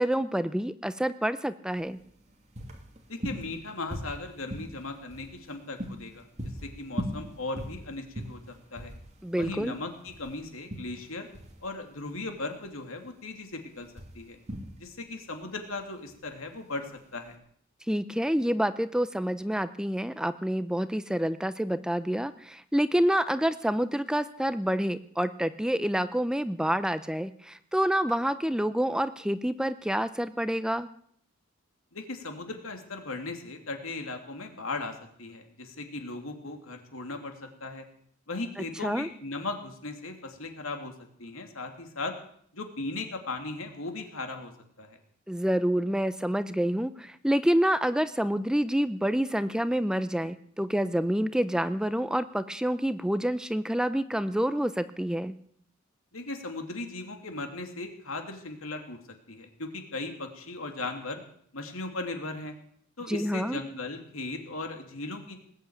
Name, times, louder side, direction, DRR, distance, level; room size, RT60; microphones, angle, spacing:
voice 1, 0.0-2.0 9.2-9.8 17.9-30.9 38.8-39.1 45.3-55.3 63.1-63.6, equal, 5° right, 12 dB, 0.5 m, -28 dB
sound 1, 1.7-17.3, equal, 35° right, 2.7 m, -41 dB
voice 2, 3.1-6.3 6.6-8.9 9.4-11.3 11.6-14.4 14.8-17.4 31.9-37.8 38.3-40.9 41.2-42.1 42.5-44.5 44.8-45.0 56.1-59.0 59.3-61.2 61.5-62.5 63.0-65.4, left 2 dB, 80° left, 4 dB, 2.8 m, -37 dB
19.5 x 8.2 x 8.9 m, 0.63 s
head